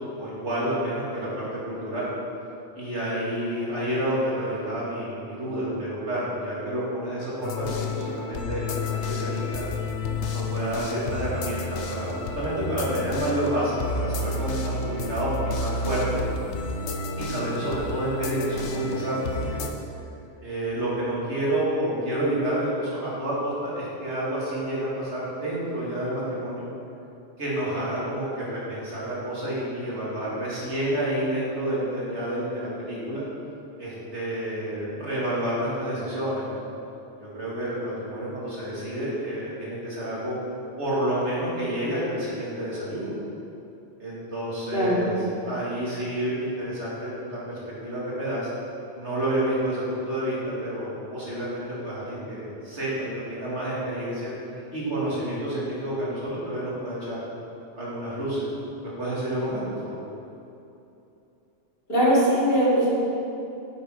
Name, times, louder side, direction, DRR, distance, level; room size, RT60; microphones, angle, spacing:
voice 1, 0.2-2.1 2.8-9.6 10.3-16.2 17.2-19.6 20.4-26.7 27.4-33.2 33.8-36.6 37.2-40.4 40.8-43.2 44.0-45.1 45.4-48.5 49.0-54.3 54.7-57.2 57.8-58.5 58.8-60.0, right 1 dB, 70° right, -8 dB, 3.0 m, -29 dB
sound 1, 7.4-19.7, left 3 dB, 75° left, 1.1 m, -31 dB
voice 2, 44.7-45.0 61.9-63.0, equal, 55° left, -8 dB, 2.9 m, -20 dB
10.0 x 7.7 x 4.8 m, 2.9 s
omnidirectional pair, 1.2 m